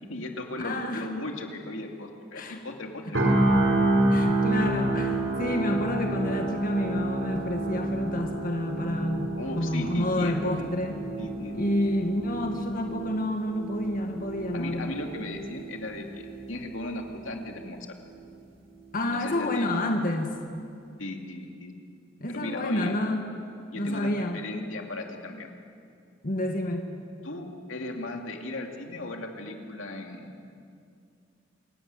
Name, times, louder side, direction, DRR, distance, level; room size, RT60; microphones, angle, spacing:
voice 1, 0.0-3.3 9.4-10.7 11.2-11.9 14.5-17.8 19.1-19.7 21.0-21.7 22.3-22.9 23.7-25.5 27.2-30.4, left 2 dB, 85° left, 2 dB, 2.5 m, -37 dB
voice 2, 0.6-1.1 2.3-2.6 3.0-3.2 4.1-11.1 11.5-14.9 18.9-20.3 22.2-23.3 23.7-24.4 26.2-26.9, left 1 dB, 45° left, 3 dB, 1.7 m, -29 dB
sound 1, 3.1-17.1 17.5-17.7, right 2 dB, 80° right, 4.7 m, -29 dB
26.5 x 15.5 x 9.7 m, 2.4 s
head